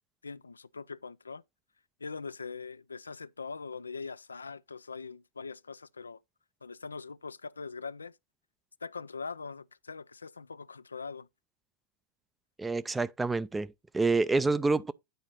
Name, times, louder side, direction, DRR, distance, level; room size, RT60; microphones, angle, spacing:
voice 1, 0.2-1.4 2.0-6.2 6.6-8.1 8.8-11.3, left 4 dB, 75° left, 0.4 m, -42 dB
voice 2, 12.6-14.9, right 3 dB, 10° right, 0.4 m, -28 dB
9.0 x 4.9 x 4.1 m
figure-of-eight pair, 90°, 0 cm